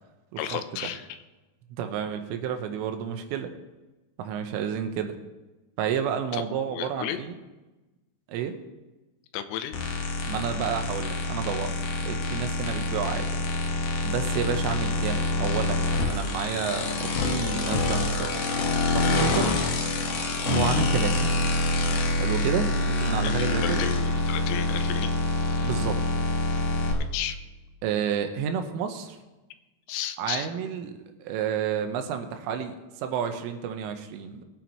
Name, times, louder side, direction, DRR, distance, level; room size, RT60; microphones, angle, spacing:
voice 1, 0.4-1.1 6.3-6.4 6.7-7.2 9.3-9.7 23.2-25.1 25.6-25.7 27.1-27.4 29.9-30.5, left 11 dB, 85° left, 9 dB, 3.3 m, -33 dB
voice 2, 1.8-3.5 4.2-5.1 5.8-7.4 8.3-8.6 10.3-11.7 12.0-13.3 14.0-18.5 19.0-19.6 20.5-21.4 22.2-23.9 25.6-26.0 27.8-29.2 30.2-30.9 31.2-34.4, right 8 dB, 80° right, 6 dB, 3.5 m, -30 dB
sound 1, 9.7-26.9, left 2 dB, 65° left, 2.1 m, -26 dB
21.5 x 9.2 x 3.0 m, 1.1 s
omnidirectional pair, 5.8 m